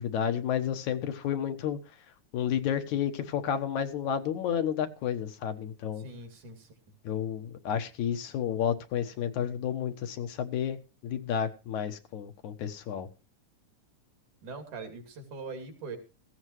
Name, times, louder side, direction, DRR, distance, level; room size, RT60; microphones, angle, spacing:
voice 1, 0.0-1.8 2.3-6.1 7.0-13.1, left 9 dB, 80° left, 7 dB, 2.7 m, -31 dB
voice 2, 6.0-6.7 14.4-16.0, right 4 dB, 85° right, 6 dB, 4.1 m, -42 dB
17.0 x 15.5 x 3.1 m, 0.31 s
omnidirectional pair, 3.4 m